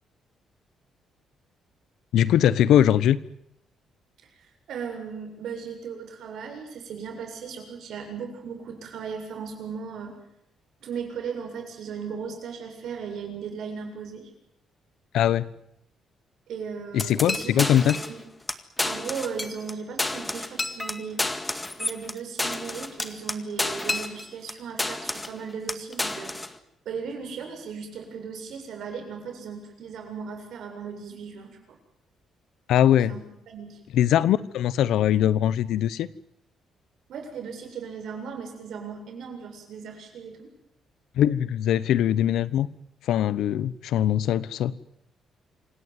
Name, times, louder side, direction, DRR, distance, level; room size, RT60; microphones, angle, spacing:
voice 1, 2.1-3.2 15.1-15.5 16.9-18.0 32.7-33.1 33.9-36.1 41.2-42.7 43.1-44.7, left 11 dB, 80° left, 18 dB, 1.1 m, -21 dB
voice 2, 4.7-10.2 10.8-14.3 16.5-18.2 18.8-21.2 21.8-26.4 26.9-31.8 33.1-33.8 37.1-40.5, right 6 dB, 70° right, 4 dB, 7.4 m, -37 dB
sound 1, 17.0-18.2 18.5-18.6 18.8-19.7 20.0-24.5 24.8-25.4 25.7-26.5, left 2 dB, 15° left, 2.0 m, -30 dB
27.5 x 18.0 x 9.4 m, 0.80 s
cardioid pair, 90°, 0 cm